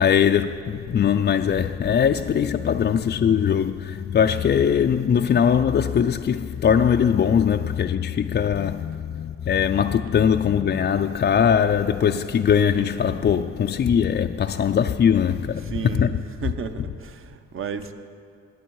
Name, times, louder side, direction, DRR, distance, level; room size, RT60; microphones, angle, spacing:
voice 1, 0.0-16.2, left 8 dB, 35° left, 0.4 m, -21 dB
voice 2, 15.7-16.1 16.4-17.9, right 6 dB, 45° right, 0.9 m, -32 dB
20.5 x 8.3 x 4.7 m
cardioid pair, 90°, 30 cm